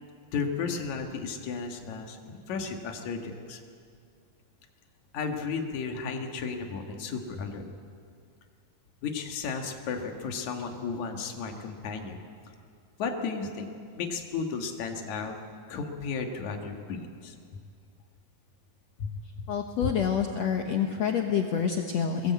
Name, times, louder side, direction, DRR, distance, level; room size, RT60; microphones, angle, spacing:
voice 1, 0.3-3.6 5.1-7.6 9.0-12.2 13.0-13.7 14.0-15.3 15.7-17.3 19.0-19.1 19.8-19.9 20.7-20.8, left 5 dB, 55° left, 3 dB, 2.8 m, -34 dB
voice 2, 19.5-22.3, left 7 dB, 75° left, 3 dB, 1.5 m, -27 dB
23.0 x 20.0 x 8.5 m, 2.3 s
omnidirectional pair, 4.6 m